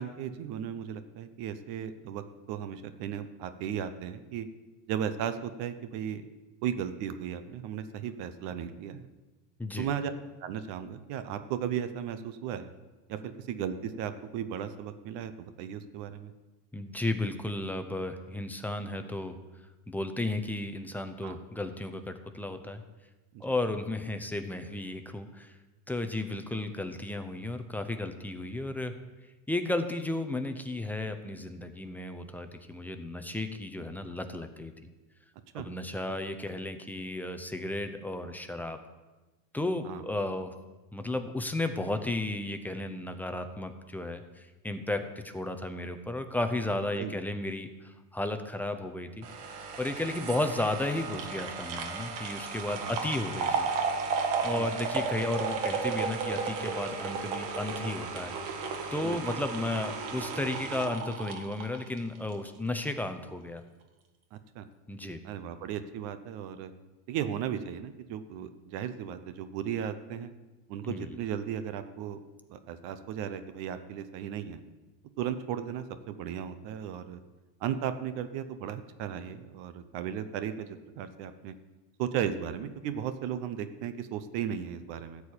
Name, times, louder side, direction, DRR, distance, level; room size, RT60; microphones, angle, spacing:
voice 1, 0.0-4.5 4.9-6.2 6.6-9.1 9.8-10.1 10.4-12.7 13.1-16.3 21.2-21.4 23.3-23.4 35.5-35.7 39.8-40.0 47.0-47.2 52.8-52.9 54.5-54.7 59.0-59.4 64.3-64.7 65.2-66.7 67.1-70.3 70.7-72.2 72.5-74.6 75.2-77.2 77.6-81.5 82.0-85.2, right 9 dB, 60° right, 11 dB, 0.9 m, -36 dB
voice 2, 16.7-19.3 19.9-22.8 23.4-25.5 25.9-28.9 29.5-34.7 35.5-38.8 39.5-40.5 40.9-49.3 49.8-53.7 54.4-58.7 58.9-63.6 64.9-65.2 70.8-71.1, left 2 dB, 5° left, 7 dB, 0.5 m, -34 dB
sound 1, 49.2-62.5 62.8-62.9, right 5 dB, 80° right, 2.0 m, -34 dB
13.5 x 4.7 x 8.6 m, 1.2 s
supercardioid pair, 135°, 49 cm